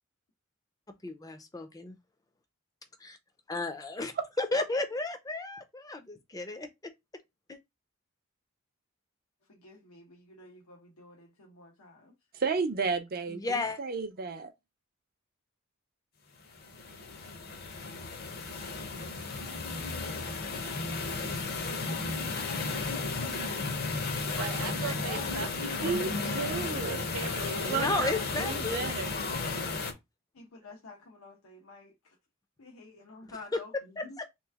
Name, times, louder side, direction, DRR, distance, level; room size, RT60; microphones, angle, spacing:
voice 1, 1.0-1.9 3.0-3.2 3.5-4.1 4.4-6.7 7.5-7.6 13.3-13.8 24.3-24.4 24.8-24.9 27.7-29.1, left 2 dB, 15° left, 0.5 m, -33 dB
voice 2, 9.5-12.1 25.0-25.6 30.3-32.2 32.6-34.2, left 3 dB, 85° left, 0.9 m, -49 dB
voice 3, 12.3-14.5 25.8-27.0 27.7-29.2, right 5 dB, 45° right, 0.6 m, -33 dB
sound 1, 16.5-29.9, left 3 dB, 45° left, 0.8 m, -34 dB
voice 4, 24.3-28.1 28.4-28.5, right 5 dB, 85° right, 0.7 m, -40 dB
3.2 x 3.0 x 3.4 m
head